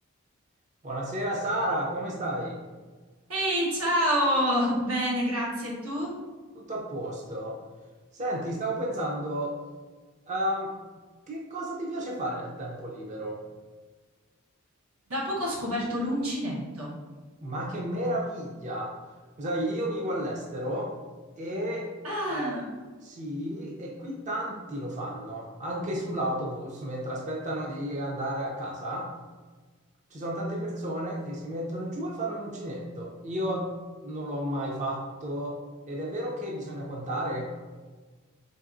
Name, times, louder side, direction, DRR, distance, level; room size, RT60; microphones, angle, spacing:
voice 1, 0.8-2.6 6.5-7.6 8.1-9.6 10.3-10.7 11.3-13.4 17.4-18.9 19.4-20.9 21.4-21.9 22.3-22.6 23.0-29.1 30.1-33.7 34.0-35.6 35.9-37.5, right 1 dB, 35° right, -2 dB, 0.5 m, -32 dB
voice 2, 3.3-6.1 15.1-16.9 22.0-22.7, equal, 85° right, -4 dB, 1.0 m, -27 dB
3.9 x 2.9 x 2.5 m, 1.4 s
head